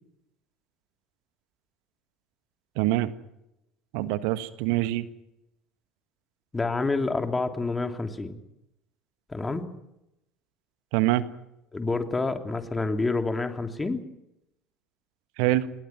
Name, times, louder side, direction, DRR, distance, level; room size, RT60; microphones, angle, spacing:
voice 1, 2.8-3.1 3.9-5.1 10.9-11.2 15.4-15.6, right 16 dB, 65° right, 13 dB, 1.5 m, -24 dB
voice 2, 6.5-8.4 9.3-9.7 11.7-14.0, left 3 dB, 15° left, 6 dB, 3.1 m, -28 dB
28.0 x 21.5 x 6.1 m, 0.86 s
figure-of-eight pair, 65°, 0 cm